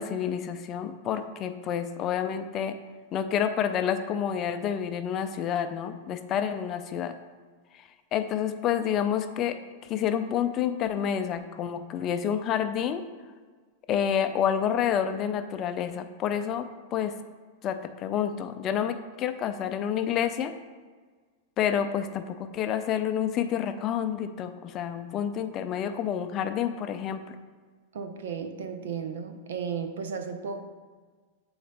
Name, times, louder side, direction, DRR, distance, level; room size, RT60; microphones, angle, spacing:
voice 1, 0.0-2.8 3.1-7.1 8.1-9.6 9.9-13.0 13.9-17.2 17.6-20.5 21.6-27.4, left 9 dB, 30° left, 8 dB, 0.4 m, -29 dB
voice 2, 27.9-30.6, right 6 dB, 90° right, 7 dB, 0.7 m, -34 dB
8.6 x 3.9 x 3.3 m, 1.5 s
supercardioid pair, 155°, 0 cm